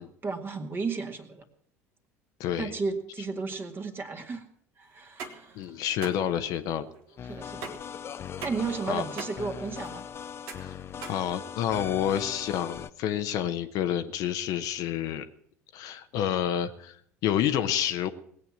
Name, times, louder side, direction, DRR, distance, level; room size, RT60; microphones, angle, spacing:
voice 1, 0.0-1.4 2.6-4.5 4.8-5.8 7.3-7.7 8.4-10.1, right 4 dB, 25° right, 5 dB, 2.1 m, -34 dB
voice 2, 2.4-2.8 5.5-6.9 8.9-9.0 10.6-10.8 11.1-15.2 15.7-18.1, left 10 dB, 50° left, 9 dB, 1.0 m, -29 dB
sound 1, 5.0-11.9, right 4 dB, 60° right, 2.0 m, -43 dB
sound 2, 7.2-12.9, left 8 dB, 30° left, 0.6 m, -40 dB
19.5 x 8.5 x 7.4 m, 0.64 s
figure-of-eight pair, 65°, 8 cm